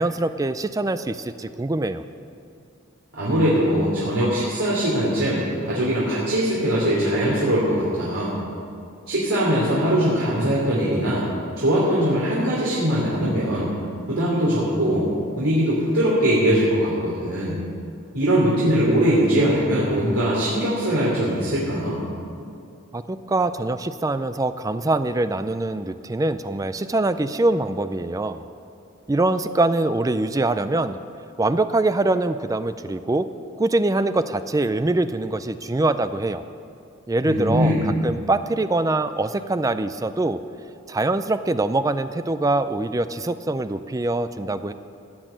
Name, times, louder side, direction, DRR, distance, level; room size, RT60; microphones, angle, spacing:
voice 1, 0.0-2.0 22.9-28.4 29.1-31.0 31.4-33.3 33.6-36.4 37.1-40.4 40.9-44.7, right 2 dB, 15° right, 11 dB, 0.4 m, -23 dB
voice 2, 3.1-8.4 9.1-11.3 11.6-13.7 14.1-15.1 15.4-17.6 18.1-22.0 37.2-37.9, equal, 90° right, -7 dB, 3.1 m, -21 dB
16.5 x 6.3 x 9.0 m, 2.5 s
head